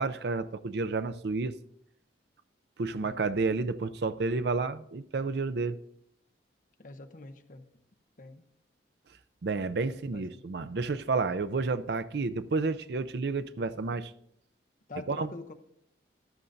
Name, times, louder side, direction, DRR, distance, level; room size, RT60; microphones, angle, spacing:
voice 1, 0.0-1.5 2.8-5.8 9.4-14.1 15.1-15.3, right 3 dB, 65° right, 0.5 m, -30 dB
voice 2, 6.8-7.6 8.2-8.4 9.9-10.4 14.9-15.5, left 2 dB, 45° left, 0.8 m, -45 dB
14.0 x 11.0 x 2.6 m
head